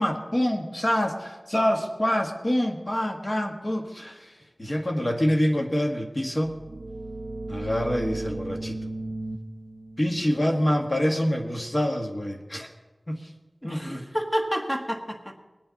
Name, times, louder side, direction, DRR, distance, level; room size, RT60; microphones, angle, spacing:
voice 1, 0.0-4.3 4.6-6.5 7.5-8.8 10.0-12.7 13.1-13.2 13.6-14.1, equal, 40° left, 2 dB, 1.6 m, -26 dB
sound 1, 6.4-12.0, right 2 dB, 65° right, 0.7 m, -36 dB
voice 2, 13.6-15.3, equal, 15° left, 3 dB, 1.6 m, -29 dB
20.5 x 8.9 x 4.1 m, 1.2 s
wide cardioid pair, 55°, 0 cm